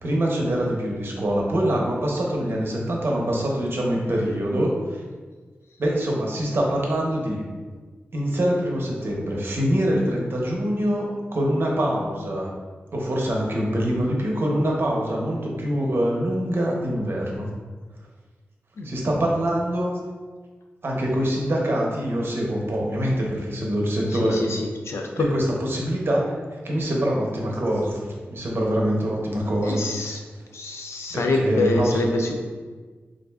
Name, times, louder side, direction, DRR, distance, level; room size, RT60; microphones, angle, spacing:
voice 1, 0.0-4.7 5.8-7.4 8.1-11.1 11.3-12.5 12.9-17.5 18.8-19.9 20.8-24.4 25.2-25.4 25.7-26.2 26.6-28.0 28.3-29.8 31.1-32.0, equal, 55° right, -2 dB, 0.7 m, -24 dB
voice 2, 24.1-25.3 29.6-30.2 30.5-32.4, left 2 dB, 80° left, 2 dB, 0.4 m, -26 dB
4.0 x 2.5 x 2.3 m, 1.4 s
wide cardioid pair, 80°, 5 cm